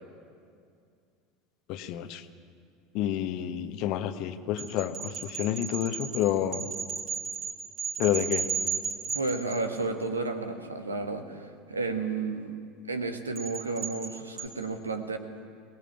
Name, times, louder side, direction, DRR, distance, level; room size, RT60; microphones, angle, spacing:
voice 1, 1.7-2.2 2.9-6.7 8.0-8.5, left 11 dB, 50° left, 11 dB, 1.2 m, -29 dB
sound 1, 4.6-10.0 13.4-14.5, right 6 dB, 40° right, 4.1 m, -34 dB
voice 2, 9.1-12.5 12.9-15.2, right 3 dB, 80° right, 7 dB, 1.7 m, -32 dB
22.5 x 18.5 x 9.0 m, 2.3 s
figure-of-eight pair, 75°, 0 cm